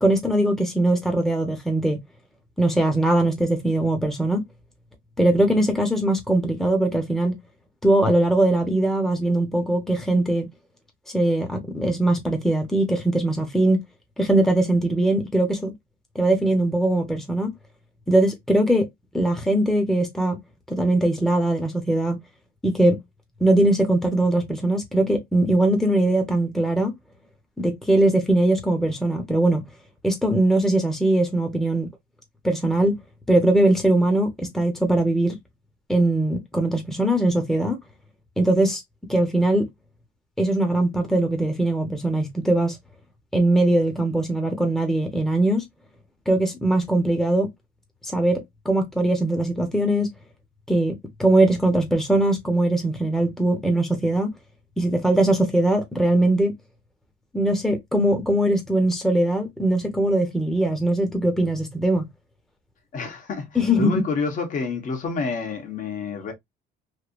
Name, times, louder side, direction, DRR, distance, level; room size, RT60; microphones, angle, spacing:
voice 1, 0.0-2.0 2.6-4.4 5.2-7.4 7.8-10.5 11.1-13.8 14.2-15.7 16.1-17.5 18.1-18.8 19.1-20.4 20.7-22.2 22.6-23.0 23.4-26.9 27.6-29.6 30.0-31.9 32.4-32.9 33.3-35.3 35.9-37.8 38.4-38.8 39.1-39.7 40.4-42.8 43.3-45.6 46.3-47.5 48.0-50.1 50.7-54.3 54.8-56.5 57.3-62.0 63.5-64.0, right 1 dB, ahead, 1.0 m, -21 dB
voice 2, 62.9-63.5 63.8-66.3, left 4 dB, 50° left, 1.3 m, -28 dB
3.3 x 2.7 x 2.5 m
cardioid pair, 110°, 17 cm